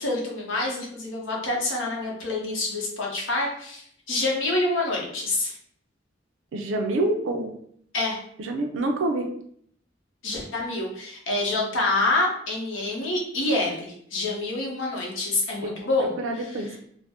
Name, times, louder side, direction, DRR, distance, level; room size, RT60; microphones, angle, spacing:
voice 1, 0.0-5.5 7.9-8.2 10.2-16.1, left 2 dB, 90° left, -2 dB, 0.9 m, -27 dB
voice 2, 6.5-7.5 8.4-9.3 15.6-16.7, right 2 dB, 85° right, 3 dB, 0.4 m, -27 dB
2.5 x 2.1 x 3.4 m, 0.65 s
head